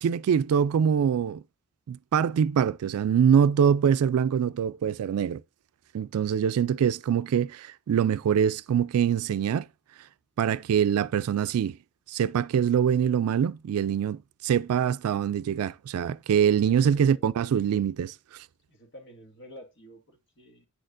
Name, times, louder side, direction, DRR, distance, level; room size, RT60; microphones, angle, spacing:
voice 1, 0.0-1.4 1.9-5.4 5.9-9.7 10.4-11.8 12.1-18.4, right 8 dB, 90° right, 0.3 m, -24 dB
voice 2, 16.7-17.5 18.7-20.7, equal, 55° left, 1.8 m, -50 dB
9.6 x 6.4 x 2.5 m
head